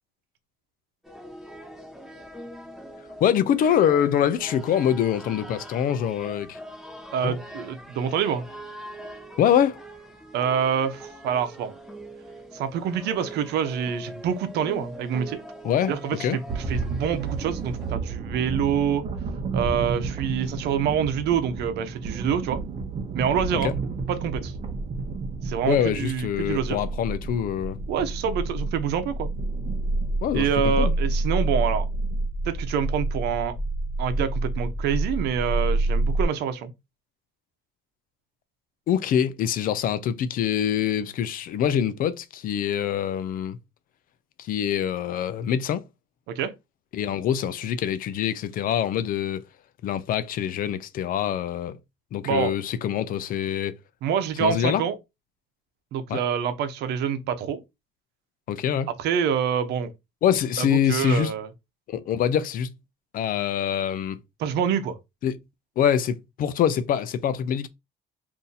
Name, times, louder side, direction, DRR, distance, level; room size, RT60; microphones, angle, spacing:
sound 1, 1.0-18.0, right 1 dB, ahead, 1.1 m, -42 dB
voice 1, 3.2-6.6 7.2-7.3 9.4-9.8 15.6-15.9 16.2-16.4 23.6-23.7 25.7-27.8 30.2-30.9 38.9-43.6 44.4-45.8 46.9-49.4 49.8-51.8 52.1-53.7 54.4-54.8 56.1-56.2 58.5-58.9 60.2-61.3 61.9-62.7 63.1-64.2 65.2-65.4 65.8-67.7, left 9 dB, 55° left, 0.5 m, -24 dB
voice 2, 7.1-8.4 10.3-11.7 12.5-15.4 15.9-19.0 19.5-22.6 23.1-23.7 24.1-24.5 25.4-26.8 27.9-29.3 30.3-31.9 32.4-33.5 34.0-36.7 46.3-46.5 52.2-52.5 54.0-54.9 55.9-57.6 59.0-59.9 60.6-61.5 64.4-65.0, right 7 dB, 80° right, 0.7 m, -26 dB
sound 2, 16.5-32.2, right 4 dB, 40° right, 0.8 m, -33 dB
sound 3, 24.7-36.2, right 2 dB, 30° left, 1.3 m, -28 dB
2.7 x 2.6 x 3.9 m
cardioid pair, 110°, 17 cm